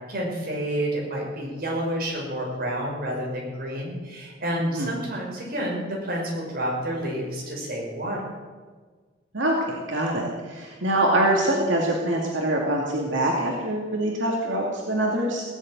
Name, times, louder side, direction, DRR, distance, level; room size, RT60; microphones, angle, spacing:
voice 1, 0.1-8.3, right 1 dB, 50° right, -2 dB, 5.6 m, -29 dB
voice 2, 4.6-4.9 9.3-15.4, right 1 dB, 85° right, -1 dB, 2.4 m, -24 dB
18.0 x 8.0 x 9.4 m, 1.4 s
head